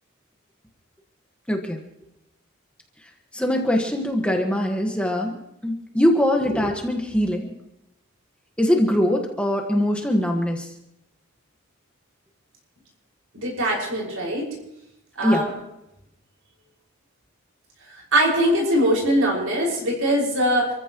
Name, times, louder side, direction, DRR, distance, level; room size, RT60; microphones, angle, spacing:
voice 1, 1.5-1.8 3.3-5.4 5.6-7.6 8.6-10.7 15.2-15.5, left 1 dB, 5° left, 2 dB, 1.5 m, -22 dB
voice 2, 13.3-14.5 15.2-15.5 18.1-20.7, equal, 75° right, -2 dB, 5.8 m, -21 dB
27.5 x 15.0 x 3.1 m, 0.85 s
head